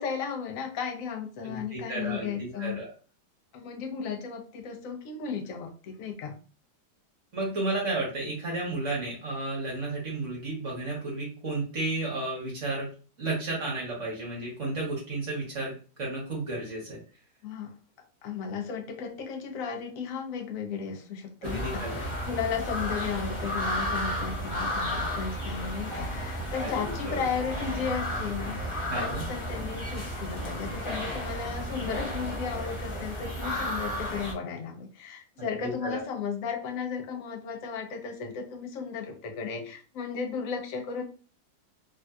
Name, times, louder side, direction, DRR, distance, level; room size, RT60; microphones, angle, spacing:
voice 1, 0.0-2.8 3.5-6.3 17.4-17.7 18.2-28.6 28.9-41.0, left 6 dB, 65° left, 3 dB, 0.9 m, -35 dB
voice 2, 1.4-2.9 7.3-12.9 13.2-15.7 16.0-17.0 21.4-22.1 26.6-27.2 28.9-29.2 35.6-36.0, right 2 dB, 50° right, -4 dB, 1.2 m, -32 dB
sound 1, 21.4-34.3, equal, 45° left, 0.3 m, -33 dB
3.3 x 2.6 x 2.3 m, 0.37 s
omnidirectional pair, 1.9 m